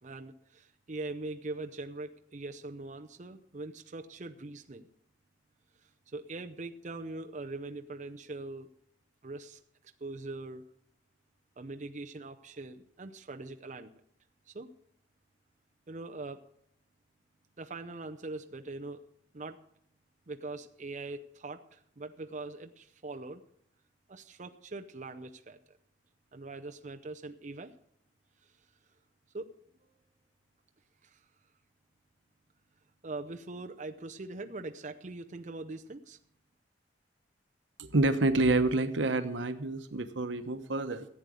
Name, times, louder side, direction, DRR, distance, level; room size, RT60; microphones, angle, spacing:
voice 1, 0.0-4.9 5.8-8.7 9.2-9.6 10.0-10.6 11.6-13.9 14.5-14.7 15.9-16.4 17.6-19.0 19.3-19.6 20.3-23.4 24.1-25.8 26.3-27.7 28.4-28.5 29.3-29.5 29.8-30.0 31.0-31.2 33.0-36.2, right 2 dB, 40° right, 5 dB, 0.6 m, -42 dB
voice 2, 37.8-41.1, right 2 dB, 90° right, 10 dB, 1.0 m, -28 dB
14.5 x 8.3 x 6.3 m, 0.73 s
head